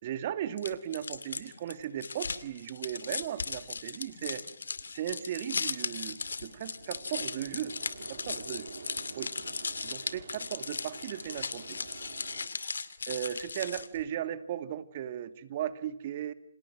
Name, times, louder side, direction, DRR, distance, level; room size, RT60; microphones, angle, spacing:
voice 1, 0.0-4.4 4.9-7.7 8.1-8.7 9.1-9.3 9.8-11.9 13.1-16.3, right 10 dB, 40° right, 12 dB, 2.4 m, -37 dB
sound 1, 0.6-14.0, left 4 dB, 80° left, 2.5 m, -37 dB
sound 2, 3.3-12.5, right 5 dB, 65° right, 3.3 m, -50 dB
29.0 x 27.5 x 6.3 m, 0.72 s
hypercardioid pair, 145°, 0 cm